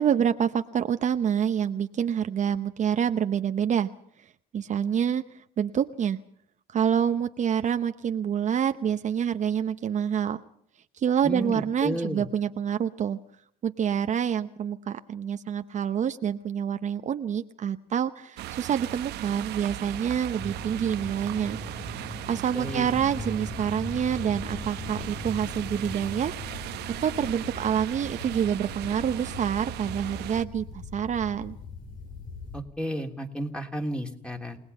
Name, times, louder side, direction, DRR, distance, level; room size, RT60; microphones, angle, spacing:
voice 1, 0.0-3.9 4.2-6.2 6.7-10.4 10.9-13.2 13.6-21.6 21.9-26.7 27.0-31.6, right 8 dB, 45° right, 8 dB, 0.9 m, -27 dB
voice 2, 11.2-12.2 22.5-23.0 32.5-34.6, equal, 5° left, 4 dB, 3.0 m, -32 dB
sound 1, 18.4-30.5, right 14 dB, 80° right, 0.9 m, -38 dB
Dissonant Winds, 20.4-26.1, left 1 dB, 25° left, 1.9 m, -40 dB
sound 2, 22.6-32.6, left 5 dB, 60° left, 5.1 m, -41 dB
29.5 x 19.0 x 5.5 m, 0.65 s
cardioid pair, 110°, 17 cm